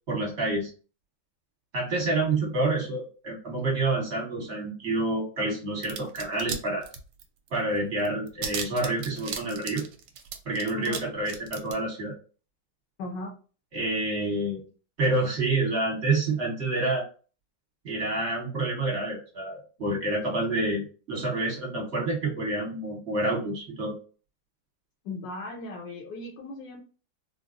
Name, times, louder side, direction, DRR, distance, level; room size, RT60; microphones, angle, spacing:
voice 1, 0.1-0.7 1.7-6.8 7.5-9.8 10.4-12.1 13.7-14.6 15.0-17.0 17.8-23.9, right 2 dB, 40° right, -3 dB, 1.2 m, -28 dB
sound 1, 5.8-6.6 6.8-7.5 7.8-7.9 8.1-11.0 11.3-11.7, right 7 dB, 75° right, 1.1 m, -35 dB
voice 2, 10.7-11.0 13.0-13.4 25.0-26.8, left 2 dB, 80° left, -2 dB, 1.4 m, -37 dB
3.7 x 2.0 x 2.5 m, 0.37 s
omnidirectional pair, 1.9 m